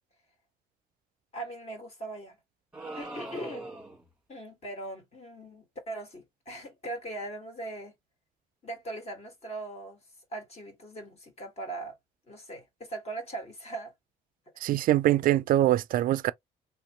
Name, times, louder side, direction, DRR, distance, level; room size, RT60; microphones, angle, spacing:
voice 1, 1.3-2.3 3.0-3.7 4.3-7.9 8.6-10.0 10.3-12.0 12.3-13.9, right 2 dB, 40° left, 1.9 m, -40 dB
sound 1, 2.7-4.1, right 2 dB, 5° right, 1.4 m, -41 dB
voice 2, 14.6-16.3, right 14 dB, 60° right, 0.4 m, -23 dB
3.3 x 2.9 x 3.0 m
cardioid pair, 110°, 17 cm